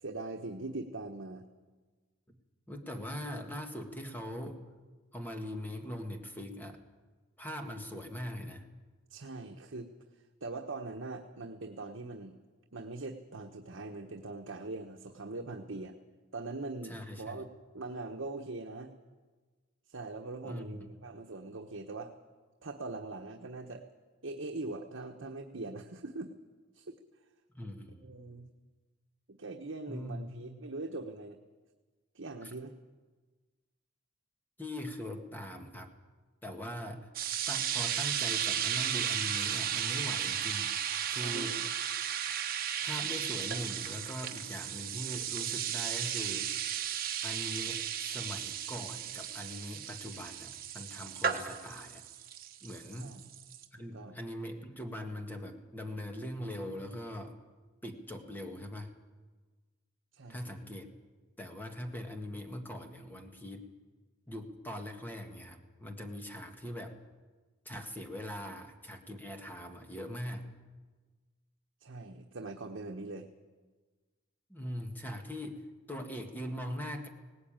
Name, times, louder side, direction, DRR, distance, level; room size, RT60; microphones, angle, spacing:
voice 1, 0.0-1.4 9.1-9.9 10.4-12.4 12.7-15.9 16.3-17.5 17.7-18.9 19.9-22.1 22.6-23.8 24.2-26.3 26.7-27.0 28.0-28.5 29.3-31.4 32.1-32.7 41.2-41.7 52.9-53.2 53.5-53.7 53.9-54.1 60.1-60.4 71.8-73.3, right 2 dB, 75° right, 3 dB, 1.2 m, -42 dB
voice 2, 2.7-4.6 5.1-6.8 7.4-8.7 16.8-17.4 20.4-20.9 27.5-28.1 29.9-30.3 32.4-32.5 34.6-35.9 36.4-37.1 37.5-40.8 41.1-41.6 42.8-46.6 47.2-52.0 52.6-53.2 53.7-57.4 57.8-58.9 60.3-60.9 61.4-63.7 64.3-67.0 67.7-70.5 74.5-75.6 75.9-77.1, equal, 10° left, 4 dB, 1.8 m, -41 dB
sound 1, 37.1-53.6, right 9 dB, 50° right, 1.4 m, -35 dB
18.5 x 17.5 x 8.9 m, 1.4 s
head